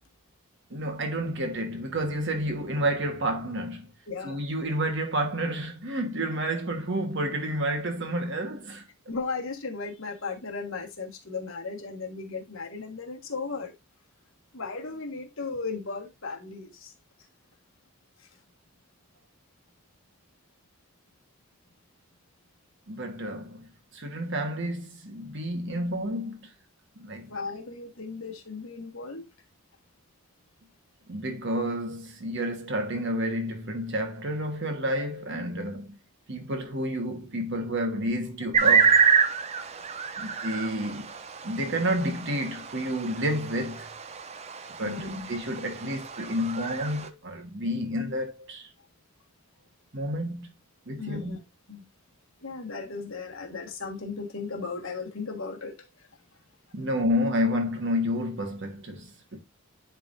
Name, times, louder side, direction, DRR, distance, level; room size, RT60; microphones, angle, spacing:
voice 1, 0.7-3.9 4.2-8.8 22.9-23.6 23.9-26.4 27.0-27.3 31.1-36.0 36.3-39.1 40.2-41.1 41.4-43.9 44.8-48.7 49.9-50.5 50.9-51.4 56.7-59.4, equal, 55° right, 1.3 m, -30 dB
voice 2, 4.1-4.4 9.1-13.7 14.5-16.9 27.3-29.3 44.8-45.3 51.0-51.4 51.7-51.8 52.4-55.8, left 4 dB, 60° left, 1.4 m, -36 dB
sound 1, 38.5-47.1, right 6 dB, 30° right, 0.5 m, -27 dB
10.5 x 3.6 x 2.6 m
head